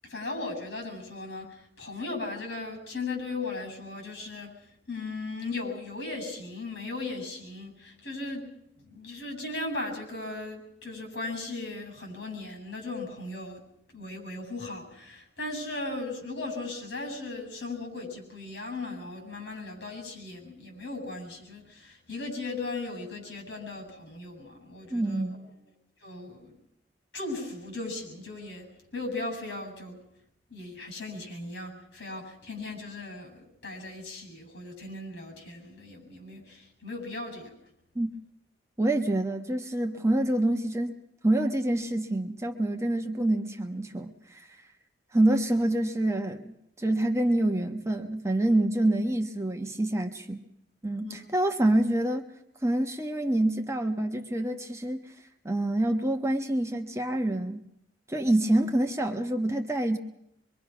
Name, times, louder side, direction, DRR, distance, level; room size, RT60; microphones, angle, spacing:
voice 1, 0.0-8.4 8.8-13.6 13.9-25.2 26.0-26.6 27.1-30.0 30.5-37.6 51.0-51.2, left 2 dB, 70° left, 4 dB, 7.8 m, -37 dB
voice 2, 24.9-25.5 37.9-38.1 38.8-41.0 41.2-44.5 45.1-50.5 50.8-52.2 52.6-55.1 55.4-57.6 58.1-60.0, right 1 dB, 15° right, 5 dB, 1.1 m, -27 dB
24.0 x 23.5 x 6.0 m, 0.76 s
head